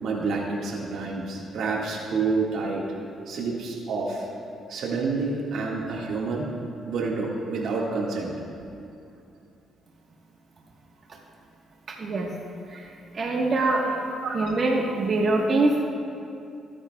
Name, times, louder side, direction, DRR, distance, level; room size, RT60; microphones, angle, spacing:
voice 1, 0.0-2.8 3.3-4.3 4.7-6.5 6.9-8.3 14.2-14.4, right 4 dB, 75° right, -2 dB, 1.8 m, -28 dB
voice 2, 13.1-13.9 14.3-15.8, right 2 dB, 45° right, -2 dB, 1.3 m, -23 dB
22.0 x 10.0 x 2.3 m, 2.6 s
cardioid pair, 90°, 0 cm